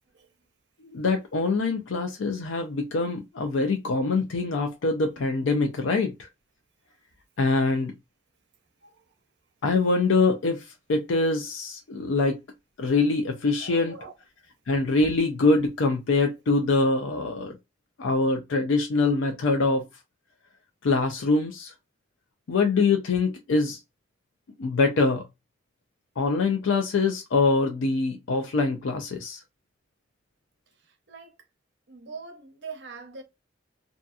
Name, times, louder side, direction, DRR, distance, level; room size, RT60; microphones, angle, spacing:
voice 1, 0.8-6.3 7.4-7.9 9.6-10.6 10.9-12.4 12.8-14.0 14.7-17.5 18.0-19.8 20.8-21.7 22.5-23.8 24.6-25.2 26.2-29.4, left 3 dB, 85° left, 0.5 m, -24 dB
voice 2, 13.6-14.1 16.8-16.9 31.1-31.3 31.9-33.2, right 4 dB, 60° right, 0.7 m, -42 dB
2.6 x 2.5 x 2.3 m
head